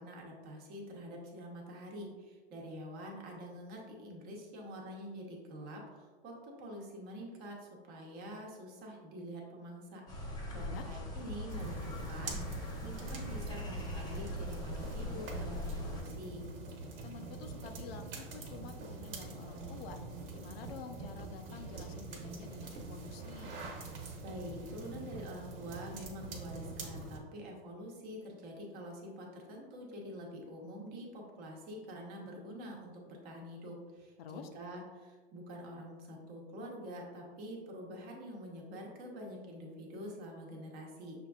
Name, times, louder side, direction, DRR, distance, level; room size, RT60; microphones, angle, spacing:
voice 1, 0.0-16.5 24.2-41.3, equal, 30° right, -1 dB, 0.9 m, -46 dB
sound 1, 10.1-16.0, left 1 dB, 15° left, 0.5 m, -41 dB
sound 2, 11.5-27.2, right 3 dB, 65° right, 1.0 m, -44 dB
voice 2, 17.0-20.0 20.3-23.6 34.2-34.5, left 6 dB, 80° left, 6 dB, 0.6 m, -49 dB
6.5 x 2.6 x 2.3 m, 1.4 s
supercardioid pair, 140°, 30 cm